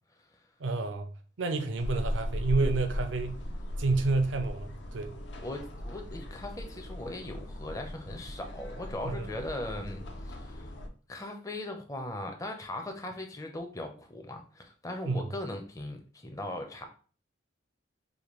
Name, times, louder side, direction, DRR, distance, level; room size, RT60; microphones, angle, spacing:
voice 1, 0.6-1.1 1.4-3.4 3.8-5.2 9.0-9.3 15.1-15.2, right 3 dB, 75° right, 0.5 m, -29 dB
sound 1, 1.8-10.9, left 1 dB, 60° left, 0.6 m, -37 dB
voice 2, 5.4-10.7 11.1-16.9, left 1 dB, 15° left, 0.6 m, -39 dB
5.0 x 2.2 x 3.0 m
head